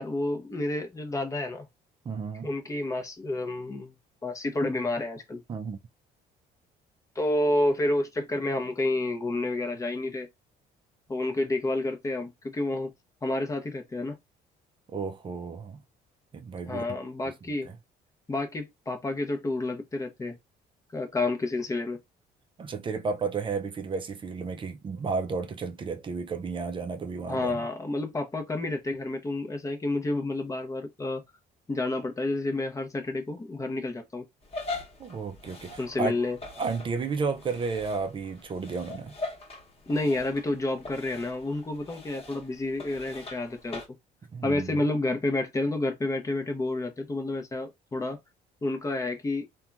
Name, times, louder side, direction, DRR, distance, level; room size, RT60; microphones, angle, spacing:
voice 1, 0.0-1.7 2.4-3.9 4.2-5.4 7.2-10.3 11.1-12.9 13.2-14.2 16.7-17.7 18.3-20.4 20.9-22.0 27.3-31.2 31.7-34.2 35.8-36.4 39.9-43.8 44.4-48.2 48.6-49.5, left 2 dB, 20° left, 0.6 m, -29 dB
voice 2, 2.1-2.5 5.5-5.8 14.9-15.8 16.3-16.8 17.5-17.7 22.6-27.6 35.0-36.1 36.6-39.1 44.3-44.8, right 4 dB, 30° right, 0.4 m, -32 dB
sound 1, 34.4-43.9, left 2 dB, 35° left, 1.0 m, -42 dB
2.8 x 2.2 x 2.4 m
cardioid pair, 110°, 17 cm